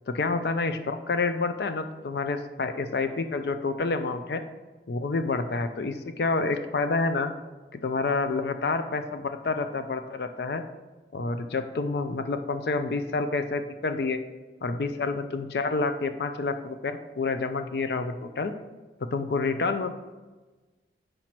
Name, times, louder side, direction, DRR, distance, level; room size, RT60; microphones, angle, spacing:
voice 1, 0.1-4.4 4.9-7.3 7.8-10.6 11.1-14.2 14.6-18.5 19.1-19.9, left 3 dB, 65° left, 9 dB, 0.4 m, -28 dB
5.2 x 4.4 x 5.9 m, 1.2 s
head